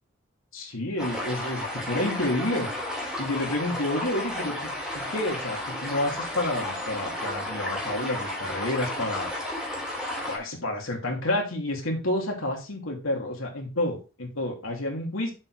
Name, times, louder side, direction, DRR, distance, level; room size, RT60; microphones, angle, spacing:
voice 1, 0.5-2.7 3.2-9.3 10.3-15.3, left 1 dB, 85° left, 0 dB, 2.8 m, -29 dB
sound 1, 1.0-10.4, left 1 dB, 5° right, 3.6 m, -33 dB
7.5 x 6.3 x 4.9 m, 0.32 s
head